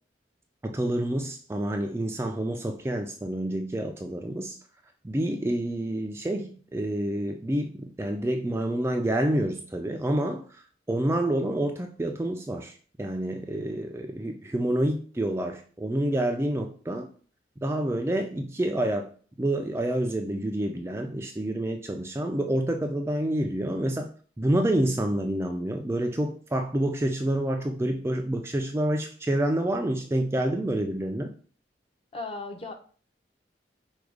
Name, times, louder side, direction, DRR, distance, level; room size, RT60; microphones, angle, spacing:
voice 1, 0.6-4.6 5.0-17.1 17.6-19.1 19.4-24.1 24.4-31.3, right 1 dB, 15° right, 4 dB, 0.3 m, -28 dB
voice 2, 32.1-32.7, left 3 dB, 30° left, 4 dB, 0.7 m, -36 dB
4.8 x 2.3 x 4.7 m, 0.42 s
head